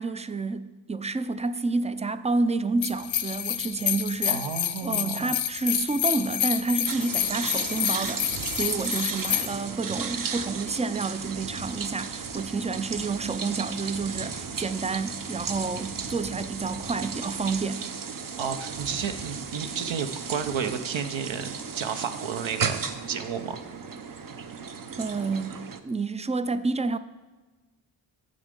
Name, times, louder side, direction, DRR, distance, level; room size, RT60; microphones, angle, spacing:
voice 1, 0.0-4.4 4.8-17.9 25.0-27.0, right 3 dB, 15° right, 0.3 m, -29 dB
sound 1, 2.8-9.5, left 10 dB, 70° left, 0.7 m, -28 dB
voice 2, 4.3-5.3 18.4-23.6, right 7 dB, 65° right, 0.9 m, -32 dB
sound 2, 6.8-17.7 18.1-21.5 21.7-22.0 22.3-23.1 23.4-23.6, right 3 dB, 85° right, 1.3 m, -47 dB
sound 3, 6.9-25.8, right 6 dB, 45° right, 0.7 m, -35 dB
14.5 x 5.1 x 3.7 m
cardioid pair, 50°, 49 cm